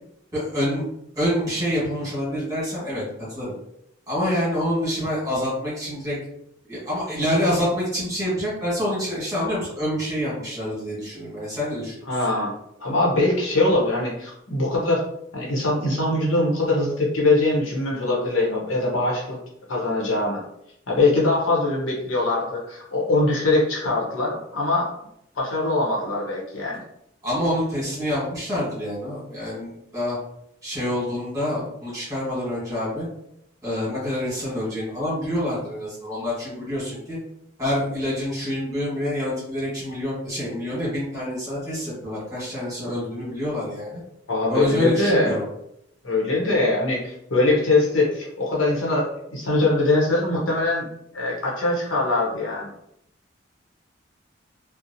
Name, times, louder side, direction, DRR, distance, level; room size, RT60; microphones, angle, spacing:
voice 1, 0.3-0.8 1.1-3.0 3.3-3.5 4.1-6.2 6.7-11.9 27.2-30.2 30.6-33.1 33.6-37.2 37.6-44.0 44.5-45.4, equal, 15° right, -7 dB, 1.4 m, -27 dB
voice 2, 12.1-12.5 12.8-15.0 15.3-19.4 19.7-20.4 20.9-24.9 25.3-26.8 44.3-45.4 46.0-50.9 51.1-52.7, left 2 dB, 75° left, -3 dB, 0.8 m, -22 dB
2.8 x 2.0 x 2.6 m, 0.77 s
head